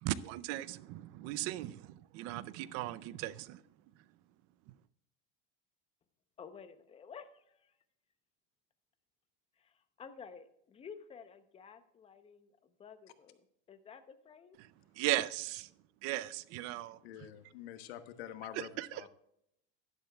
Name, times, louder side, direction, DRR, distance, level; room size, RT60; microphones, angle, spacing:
voice 1, 0.0-3.6 4.7-4.8 14.6-14.7 14.9-15.7 16.0-17.3 18.5-19.1, right 15 dB, 50° right, 0.5 m, -37 dB
voice 2, 6.4-7.7 9.6-14.6, left 6 dB, 20° left, 0.8 m, -52 dB
voice 3, 17.0-19.1, left 11 dB, 90° left, 1.2 m, -47 dB
11.5 x 11.0 x 2.3 m
supercardioid pair, 145°, 30 cm